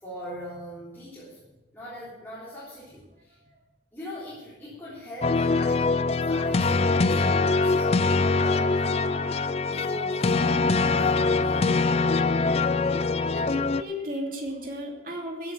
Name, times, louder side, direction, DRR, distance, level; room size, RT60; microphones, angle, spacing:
voice 1, 0.0-1.4 1.7-3.4 3.9-11.8, equal, 10° left, -9 dB, 3.6 m, -41 dB
sound 1, 5.2-13.8, left 3 dB, 35° left, 0.4 m, -23 dB
voice 2, 13.3-15.5, equal, 50° right, 1 dB, 2.7 m, -35 dB
15.0 x 7.7 x 6.3 m, 0.98 s
head